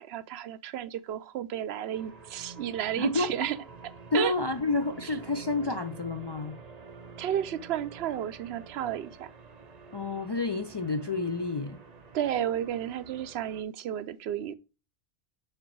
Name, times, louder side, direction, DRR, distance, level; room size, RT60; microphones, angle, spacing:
voice 1, 0.0-3.6 4.1-4.3 5.0-5.1 5.6-5.8 7.2-9.3 12.1-14.6, right 10 dB, 80° right, 0.8 m, -32 dB
sound 1, 1.9-13.6, right 4 dB, 45° right, 0.8 m, -48 dB
voice 2, 3.0-3.3 4.1-6.6 9.9-11.8, left 3 dB, 40° left, 0.3 m, -29 dB
6.7 x 4.0 x 4.5 m
omnidirectional pair, 1.0 m